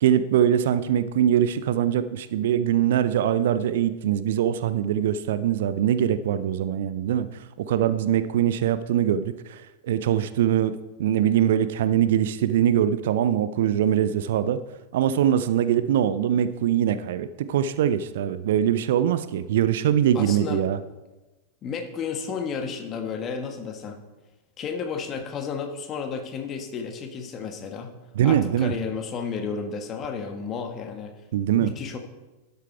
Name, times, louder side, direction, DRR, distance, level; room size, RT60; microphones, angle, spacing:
voice 1, 0.0-7.3 7.7-14.6 14.9-20.8 28.2-28.7 31.3-31.7, right 10 dB, 55° right, 13 dB, 0.5 m, -22 dB
voice 2, 20.1-20.7 21.6-24.0 24.6-27.9 28.2-31.1 31.6-32.0, left 6 dB, 30° left, 6 dB, 1.4 m, -32 dB
12.5 x 6.8 x 4.5 m, 1.1 s
figure-of-eight pair, 90°, 0 cm